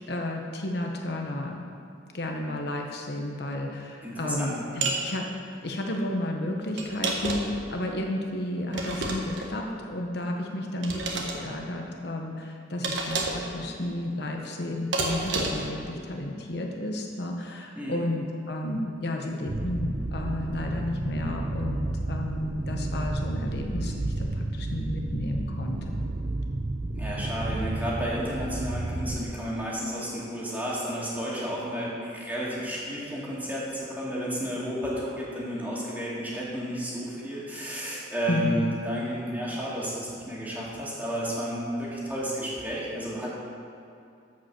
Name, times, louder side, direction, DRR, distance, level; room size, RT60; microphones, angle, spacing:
voice 1, 0.1-1.6 2.1-5.3 5.6-26.1 38.3-38.6, left 1 dB, 60° left, 1 dB, 1.0 m, -32 dB
voice 2, 4.0-4.5 17.8-18.0 26.9-43.3, equal, 10° right, -7 dB, 2.3 m, -32 dB
sound 1, 4.8-5.0 6.8-7.6 8.7-9.5 10.8-11.4 12.8-13.5 14.9-15.7, right 2 dB, 80° right, 1.3 m, -29 dB
sound 2, 19.5-29.2, right 2 dB, 45° right, 0.7 m, -31 dB
14.5 x 5.3 x 6.0 m, 2.5 s
head